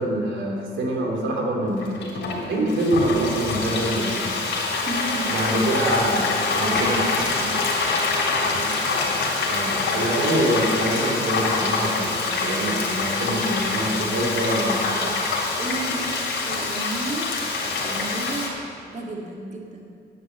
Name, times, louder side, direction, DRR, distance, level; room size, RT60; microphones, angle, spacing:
voice 1, 0.0-4.3 5.3-7.0 9.4-14.9, right 1 dB, 70° right, 0 dB, 3.2 m, -25 dB
voice 2, 1.6-1.9 4.8-5.7 6.6-9.3 15.0-17.3 17.6-19.9, right 2 dB, 35° right, 0 dB, 1.9 m, -34 dB
Frying (food), 1.8-18.5, left 3 dB, 70° left, 3.6 m, -25 dB
10.5 x 9.7 x 8.2 m, 2.4 s
cardioid pair, 90°, 20 cm